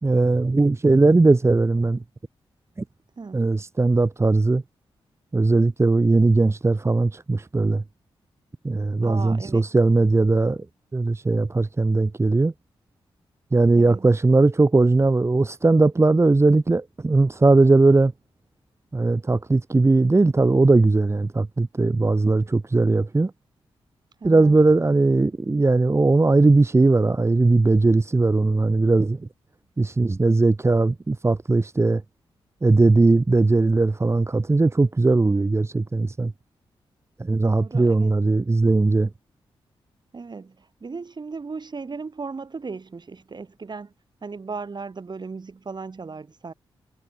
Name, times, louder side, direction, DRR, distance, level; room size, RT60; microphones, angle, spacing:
voice 1, 0.0-2.0 3.3-4.6 5.3-7.8 8.6-10.6 10.9-12.5 13.5-18.1 18.9-23.3 24.2-29.2 29.8-32.0 32.6-36.3 37.2-39.1, right 3 dB, 25° right, 1.2 m, -19 dB
voice 2, 9.0-9.7 13.7-14.1 24.2-24.6 37.4-38.1 40.1-43.9 44.2-46.5, right 4 dB, 45° right, 3.8 m, -36 dB
cardioid pair, 55°, 10 cm